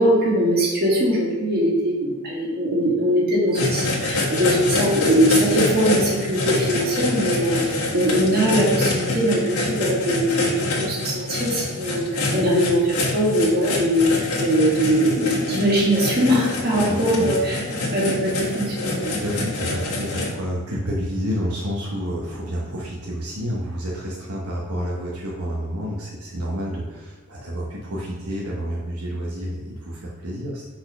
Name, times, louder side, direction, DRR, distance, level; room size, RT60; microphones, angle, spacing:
voice 1, 0.0-17.6 17.9-19.5, equal, 45° right, -4 dB, 1.8 m, -21 dB
sound 1, 3.5-20.3, left 2 dB, 90° left, 1.4 m, -26 dB
voice 2, 16.9-17.3 19.1-30.7, equal, 85° right, -4 dB, 1.0 m, -29 dB
4.3 x 4.3 x 5.4 m, 1.2 s
head